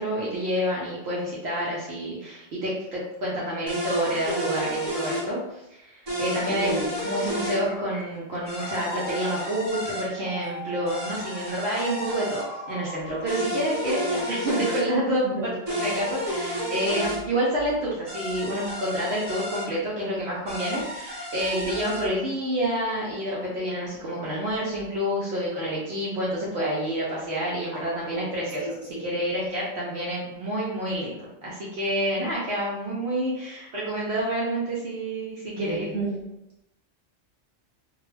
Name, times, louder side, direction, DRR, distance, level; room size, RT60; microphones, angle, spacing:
voice 1, 0.0-6.7 7.0-15.5 15.8-28.6 29.0-35.9, right 1 dB, 65° right, -6 dB, 0.8 m, -28 dB
sound 1, 3.7-5.3 6.1-7.6 8.5-10.1 10.9-12.4 13.3-14.8 15.7-17.2 18.1-19.7 20.5-22.0, equal, 35° right, 1.0 m, -31 dB
voice 2, 6.5-6.9 15.3-15.5 27.7-27.8 28.0-28.3 28.6-29.0 35.5-36.2, right 2 dB, 10° right, -10 dB, 1.2 m, -32 dB
sound 2, 6.9-14.4, left 1 dB, 60° left, 0.5 m, -40 dB
2.3 x 2.2 x 3.1 m, 0.88 s
omnidirectional pair, 1.3 m